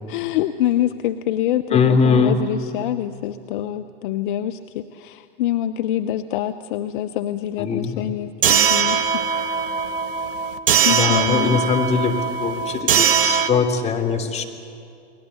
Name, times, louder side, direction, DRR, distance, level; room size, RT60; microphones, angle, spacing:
voice 1, 0.1-9.2 10.8-11.6, left 12 dB, 55° left, 9 dB, 0.9 m, -25 dB
voice 2, 1.7-2.4 7.6-8.1 10.9-14.4, left 5 dB, 20° left, 2 dB, 3.3 m, -21 dB
sound 1, 8.4-13.5, right 7 dB, 60° right, 1.4 m, -20 dB
29.5 x 21.5 x 8.0 m, 2.5 s
figure-of-eight pair, 85°, 31 cm